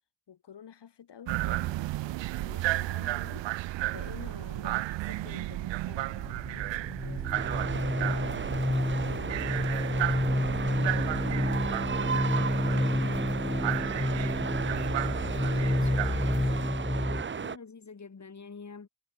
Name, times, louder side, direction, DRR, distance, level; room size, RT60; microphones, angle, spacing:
voice 1, 0.3-9.6 9.9-11.3 12.3-12.8 13.4-13.9 15.4-15.9 16.6-17.1, left 8 dB, 70° left, 2.4 m, -50 dB
sound 1, 1.3-16.7, right 17 dB, 90° right, 0.6 m, -34 dB
sound 2, 6.0-17.2, left 1 dB, 10° left, 0.9 m, -30 dB
sound 3, 7.3-17.6, right 6 dB, 25° right, 0.6 m, -35 dB
voice 2, 15.4-16.3 17.3-18.9, left 5 dB, 40° left, 2.8 m, -47 dB
cardioid pair, 50°, 43 cm